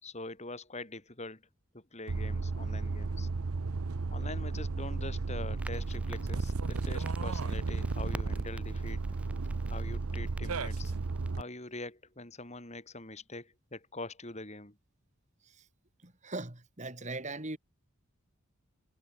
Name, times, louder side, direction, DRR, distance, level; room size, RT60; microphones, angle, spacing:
voice 1, 0.0-1.4 1.7-3.3 4.1-9.0 9.6-10.9 11.3-14.7, left 2 dB, 30° left, 3.8 m, -44 dB
sound 1, 2.1-11.4, right 3 dB, 75° right, 0.7 m, -34 dB
Crackle, 5.6-11.3, right 1 dB, 5° right, 1.2 m, -49 dB
voice 2, 16.0-17.6, right 2 dB, 30° right, 2.5 m, -39 dB
head